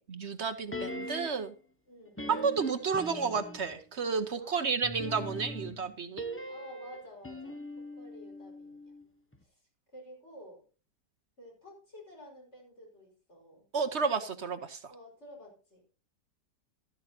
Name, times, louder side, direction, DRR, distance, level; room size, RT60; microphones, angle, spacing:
voice 1, 0.1-1.5 2.3-6.2 13.7-14.8, right 5 dB, 50° right, 9 dB, 1.0 m, -31 dB
sound 1, 0.7-1.5 2.2-3.8 4.8-9.0 9.3-9.4, equal, 10° left, 0.6 m, -41 dB
voice 2, 1.9-2.5 2.7-3.3 4.3-5.4 6.4-9.0 9.4-10.6 11.4-13.7 14.9-15.9, equal, 40° left, 0 dB, 5.4 m, -52 dB
13.5 x 13.0 x 2.8 m, 0.35 s
omnidirectional pair, 1.9 m